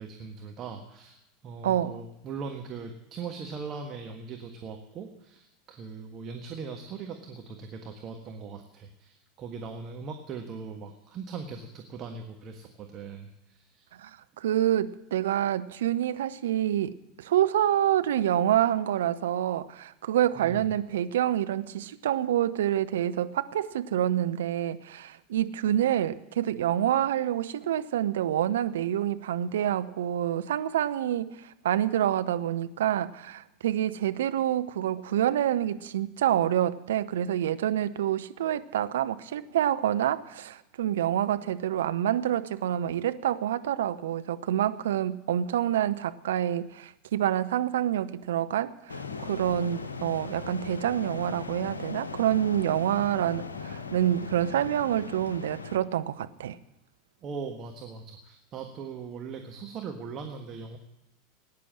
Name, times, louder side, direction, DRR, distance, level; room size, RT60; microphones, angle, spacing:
voice 1, 0.0-13.9 20.3-20.7 57.2-60.8, right 5 dB, 35° right, 4 dB, 1.5 m, -40 dB
voice 2, 1.6-1.9 14.0-14.1 14.4-56.6, right 11 dB, 65° right, 11 dB, 0.7 m, -27 dB
sound 1, 48.9-55.8, left 4 dB, 75° left, 1.0 m, -39 dB
18.5 x 9.5 x 7.6 m, 0.89 s
figure-of-eight pair, 80°, 0 cm